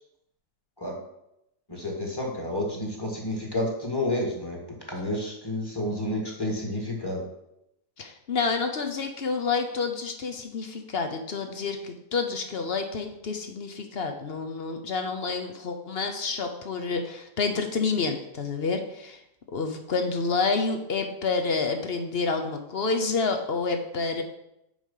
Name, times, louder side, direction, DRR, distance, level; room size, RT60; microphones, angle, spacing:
voice 1, 1.7-4.6 4.9-7.2, left 1 dB, 15° left, -1 dB, 1.6 m, -30 dB
voice 2, 8.0-19.2 19.5-24.2, left 4 dB, 50° left, 6 dB, 0.7 m, -29 dB
7.3 x 5.0 x 5.5 m, 0.83 s
omnidirectional pair, 1.8 m